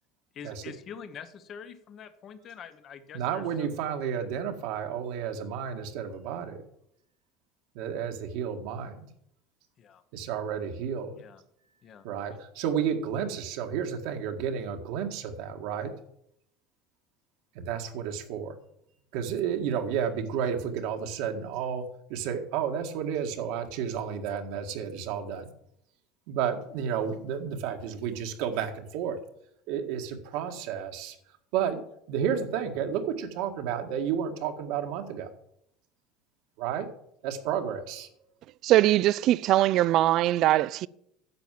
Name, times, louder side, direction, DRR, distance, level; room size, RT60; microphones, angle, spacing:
voice 1, 0.3-3.4 9.8-10.0 11.2-11.4 11.8-12.1, left 7 dB, 35° left, 1.0 m, -45 dB
voice 2, 3.1-6.6 7.7-9.0 10.1-11.2 12.0-15.9 17.5-18.5 19.1-21.8 22.1-25.5 26.3-29.2 29.7-31.2 31.5-31.8 32.1-35.3 36.6-36.9 37.2-38.1, right 8 dB, 75° right, 1.8 m, -31 dB
voice 3, 38.6-40.9, right 14 dB, 50° right, 0.4 m, -21 dB
10.5 x 7.2 x 7.5 m
cardioid pair, 145°, 0 cm